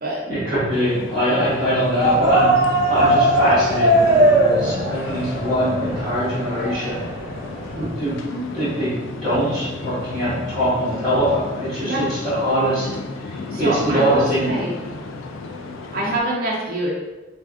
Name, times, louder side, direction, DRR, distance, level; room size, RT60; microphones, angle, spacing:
voice 1, 0.3-2.6 2.9-7.0 7.7-8.2 8.5-12.9 13.3-14.7, equal, ahead, -18 dB, 1.0 m, -22 dB
sound 1, 0.7-16.2, left 3 dB, 80° left, 0.3 m, -34 dB
sound 2, 2.0-7.9, right 1 dB, 15° right, 0.8 m, -19 dB
voice 2, 13.5-14.7 15.9-16.9, right 1 dB, 45° right, -5 dB, 0.5 m, -25 dB
3.2 x 2.5 x 2.4 m, 1.1 s
head